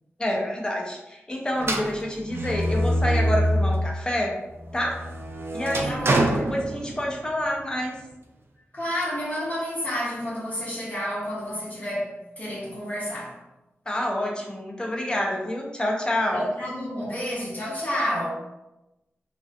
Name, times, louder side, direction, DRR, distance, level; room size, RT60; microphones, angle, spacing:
voice 1, 0.2-4.3 4.7-5.0 5.5-6.0 6.5-8.0 13.9-16.5, left 1 dB, 20° left, -1 dB, 0.5 m, -27 dB
sound 1, 1.6-4.0 4.5-7.3, equal, 65° right, 0.3 m, -25 dB
voice 2, 5.8-6.3 8.7-13.4 16.3-18.3, equal, 35° left, -7 dB, 1.0 m, -30 dB
2.3 x 2.2 x 2.5 m, 0.96 s
wide cardioid pair, 80°, 4 cm